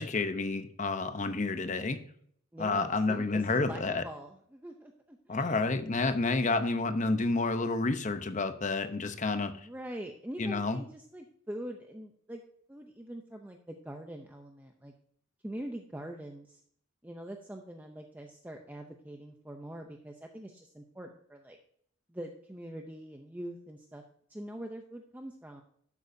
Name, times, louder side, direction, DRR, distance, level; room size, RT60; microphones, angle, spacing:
voice 1, 0.0-2.0 2.6-4.0 5.3-9.5 10.4-10.8, left 3 dB, 35° left, 9 dB, 0.7 m, -30 dB
voice 2, 2.5-5.8 9.6-12.4 12.7-14.9 15.4-16.6 17.0-21.6 22.1-24.0 24.3-25.6, right 1 dB, 10° right, 3 dB, 0.6 m, -43 dB
11.5 x 8.4 x 2.7 m, 0.63 s
head